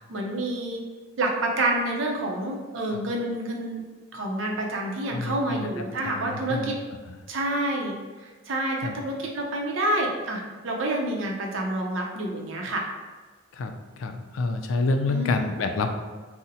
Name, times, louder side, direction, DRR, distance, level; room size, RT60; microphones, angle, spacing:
voice 1, 0.1-0.8 1.2-3.8 4.1-6.7 7.3-8.0 8.5-12.9 15.1-15.5, right 1 dB, 80° right, 0 dB, 0.5 m, -28 dB
voice 2, 5.1-5.7 6.0-6.7 8.8-8.9 13.5-13.7 14.0-15.9, left 3 dB, 85° left, 6 dB, 0.3 m, -28 dB
2.7 x 2.0 x 3.8 m, 1.4 s
head